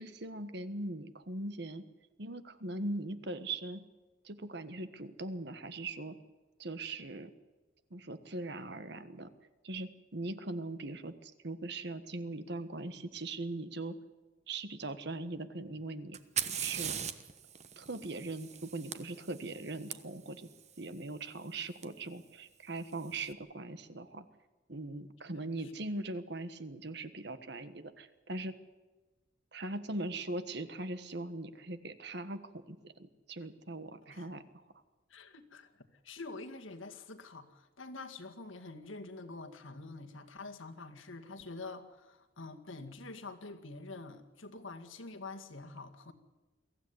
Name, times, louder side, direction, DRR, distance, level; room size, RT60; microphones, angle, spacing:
voice 1, 0.0-1.9 2.2-3.8 4.2-6.2 6.6-7.3 7.9-9.3 9.6-14.0 14.5-16.2 16.4-17.0 17.8-20.5 20.8-24.3 24.7-28.6 29.5-34.6, right 2 dB, 55° right, 11 dB, 1.4 m, -40 dB
Fire, 16.1-19.9 21.8-21.9 22.8-23.2, right 9 dB, 35° right, 1.1 m, -39 dB
voice 2, 35.1-46.1, left 3 dB, 80° left, 5 dB, 2.1 m, -46 dB
23.0 x 15.0 x 9.8 m, 1.2 s
head